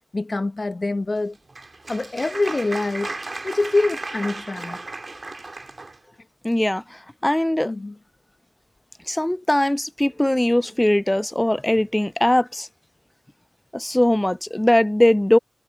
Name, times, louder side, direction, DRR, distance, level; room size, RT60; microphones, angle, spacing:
voice 1, 0.1-1.4 1.9-3.1 3.4-4.8 7.6-7.9, left 2 dB, 40° left, 1.2 m, -25 dB
Applause, 1.1-6.0, right 2 dB, 40° right, 2.0 m, -35 dB
voice 2, 6.4-7.7 9.1-12.7 13.7-15.4, left 1 dB, 10° left, 0.4 m, -20 dB
wide cardioid pair, 85°, 0 cm